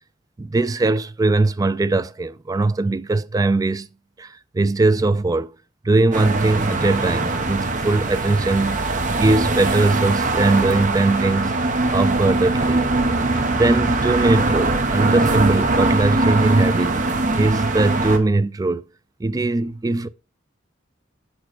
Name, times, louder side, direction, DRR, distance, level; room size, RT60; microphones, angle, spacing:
voice 1, 0.4-3.9 4.2-5.5 5.8-11.6 11.9-12.9 13.5-17.0 17.3-18.8 19.2-20.1, right 2 dB, 20° right, 0.3 m, -20 dB
sound 1, 6.1-18.2, right 2 dB, 40° right, 0.9 m, -21 dB
5.5 x 4.5 x 6.2 m
head